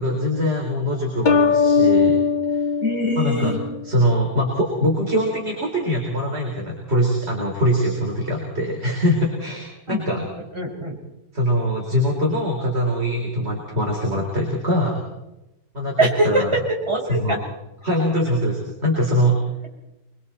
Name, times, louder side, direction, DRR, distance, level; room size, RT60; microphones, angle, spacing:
voice 1, 0.0-2.2 2.5-2.7 3.2-3.5 3.8-10.2 11.3-15.0 15.7-16.5 17.1-17.4 17.8-19.4, equal, 35° right, -1 dB, 4.4 m, -22 dB
sound 1, 1.3-3.9, left 5 dB, 55° left, 0.5 m, -19 dB
voice 2, 2.8-3.6 9.9-10.2 10.5-10.9 16.0-17.4, right 1 dB, 15° right, -2 dB, 5.1 m, -23 dB
28.5 x 22.5 x 4.4 m, 0.95 s
omnidirectional pair, 1.9 m